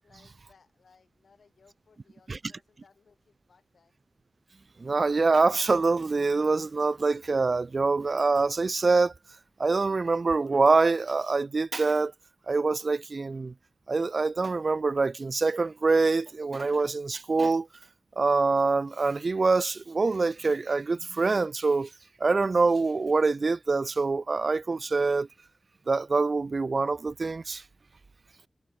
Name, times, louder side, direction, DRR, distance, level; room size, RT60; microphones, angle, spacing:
voice 1, 0.0-4.0, left 5 dB, 80° left, 5.6 m, -63 dB
voice 2, 4.8-9.1 9.6-12.1 12.5-13.5 13.9-17.7 18.2-21.9 22.2-25.3 25.9-27.6, right 3 dB, 55° right, 0.3 m, -25 dB
wide cardioid pair, 65°, 0 cm